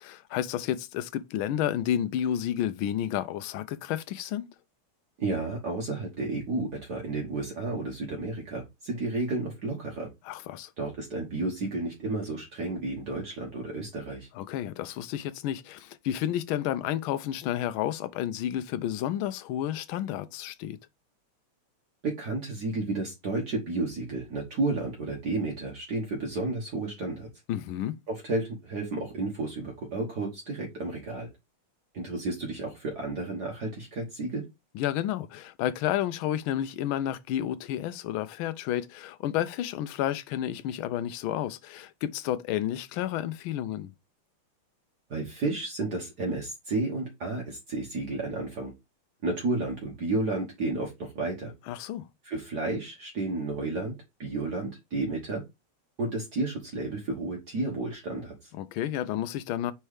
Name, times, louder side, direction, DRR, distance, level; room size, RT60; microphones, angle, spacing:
voice 1, 0.0-4.5 10.3-10.7 14.3-20.8 27.5-28.0 34.7-43.9 51.7-52.1 58.5-59.7, left 11 dB, 75° left, 1.4 m, -31 dB
voice 2, 5.2-10.1 10.8-14.3 22.0-27.3 28.1-31.3 31.9-34.4 45.1-48.7 49.2-51.5 52.2-53.9 54.2-55.4 56.0-58.5, right 2 dB, 50° right, 1.8 m, -32 dB
4.5 x 4.3 x 4.8 m
omnidirectional pair, 2.4 m